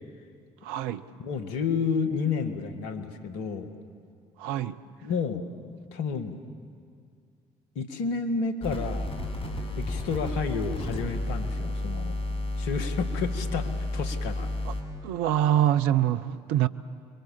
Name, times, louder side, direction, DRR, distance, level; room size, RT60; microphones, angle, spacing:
voice 1, 0.6-1.0 4.4-4.8 14.6-14.7 15.0-16.7, right 11 dB, 75° right, 12 dB, 0.7 m, -25 dB
voice 2, 1.2-3.7 5.0-5.4 5.9-6.4 7.8-9.1 9.8-12.2 12.6-14.5, left 5 dB, 75° left, 8 dB, 1.8 m, -30 dB
sound 1, 8.6-14.8, left 1 dB, 35° left, 6.3 m, -31 dB
28.5 x 22.5 x 7.1 m, 2.3 s
hypercardioid pair, 50°, 16 cm